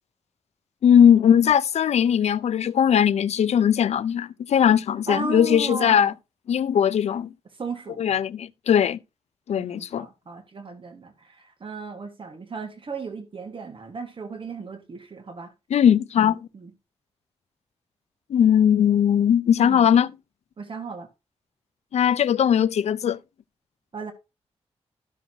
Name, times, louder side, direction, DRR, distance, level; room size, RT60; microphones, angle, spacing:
voice 1, 0.8-6.1 6.5-7.3 8.0-9.0 9.5-10.1 15.7-16.5 18.3-20.1 21.9-23.2, left 9 dB, 80° left, 0.4 m, -19 dB
voice 2, 5.1-6.1 7.6-8.1 9.6-15.5 16.2-16.7 19.6-19.9 20.6-21.1 23.9-24.1, right 4 dB, 50° right, 1.5 m, -35 dB
13.5 x 6.2 x 2.8 m
cardioid pair, 85°, 11 cm